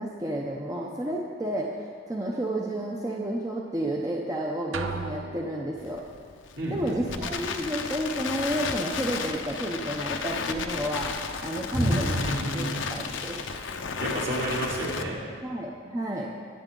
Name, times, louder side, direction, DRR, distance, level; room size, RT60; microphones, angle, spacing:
voice 1, 0.0-6.0 6.7-12.2 12.5-13.4 15.4-16.3, right 1 dB, 15° right, -2 dB, 0.7 m, -31 dB
sound 1, 4.7-6.2, right 3 dB, 90° right, 0.8 m, -36 dB
Crackle, 5.8-15.0, left 5 dB, 75° left, 0.7 m, -33 dB
voice 2, 6.6-7.2 11.7-12.8 13.5-15.2, right 1 dB, 55° right, -5 dB, 3.1 m, -30 dB
21.0 x 8.2 x 3.8 m, 2.1 s
head